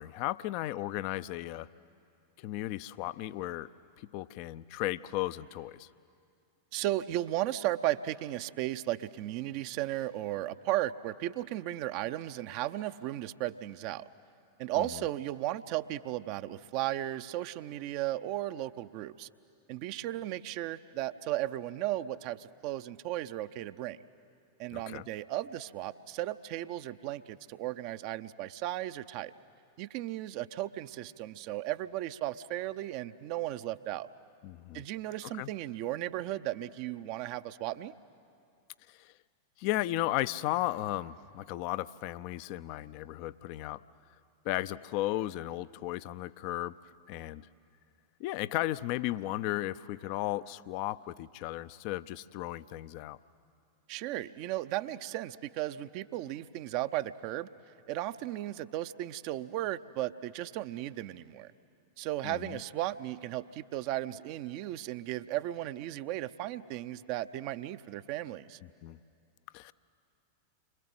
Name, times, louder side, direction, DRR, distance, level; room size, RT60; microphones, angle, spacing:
voice 1, 0.0-1.7 2.4-3.7 4.0-5.9 14.8-14.9 24.7-25.0 34.4-34.8 35.4-35.5 38.9-39.1 39.6-43.8 44.4-46.7 47.1-47.5 48.2-53.2 62.2-62.6 68.6-69.0 69.5-69.7, left 15 dB, 45° left, 15 dB, 0.6 m, -35 dB
voice 2, 6.7-14.1 14.6-19.3 19.7-24.0 24.6-29.3 29.8-34.1 34.7-37.9 53.9-57.5 57.9-61.5 62.0-68.6, right 14 dB, 45° right, 11 dB, 0.7 m, -35 dB
29.0 x 24.5 x 7.9 m, 2.5 s
figure-of-eight pair, 90°, 0 cm